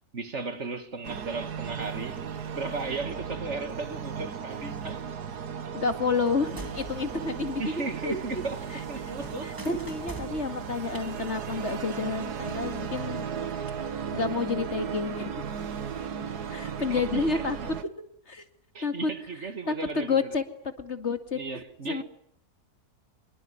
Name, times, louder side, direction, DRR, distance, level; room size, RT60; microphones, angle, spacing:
voice 1, 0.1-2.2 2.5-5.0 7.6-9.6 16.9-17.4 18.7-20.3 21.3-22.0, right 3 dB, 50° right, 2.0 m, -35 dB
sound 1, 1.0-17.8, right 7 dB, 85° right, 1.9 m, -36 dB
voice 2, 5.7-8.2 9.4-13.3 14.1-15.3 16.5-17.6 18.3-18.4 18.8-19.1 19.7-20.4 20.8-22.0, left 4 dB, 45° left, 2.4 m, -30 dB
sound 2, 6.3-8.1 8.4-11.1, equal, 15° right, 2.1 m, -45 dB
26.0 x 23.0 x 9.6 m
omnidirectional pair, 1.6 m